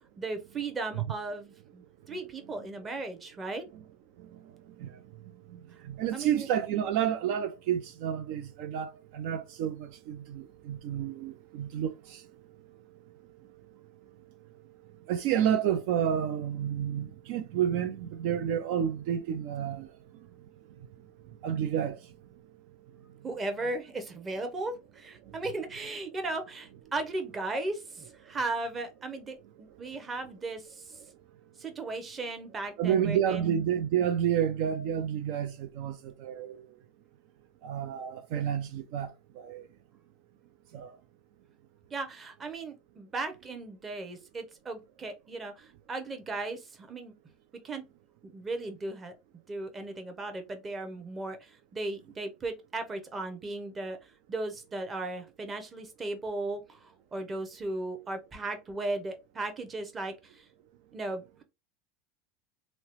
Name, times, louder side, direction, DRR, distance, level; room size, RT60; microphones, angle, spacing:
voice 1, 0.2-3.7 6.1-6.5 23.2-31.0 31.6-33.5 41.9-47.1 47.6-47.8 48.2-49.1 49.5-54.0 54.3-60.4 60.9-61.2, right 2 dB, 25° right, 0.8 m, -36 dB
voice 2, 5.5-12.2 15.1-19.9 21.4-22.0 32.8-36.7 37.6-39.7 40.7-41.0, right 9 dB, 65° right, 0.3 m, -30 dB
2.8 x 2.0 x 2.9 m
supercardioid pair, 105°, 0 cm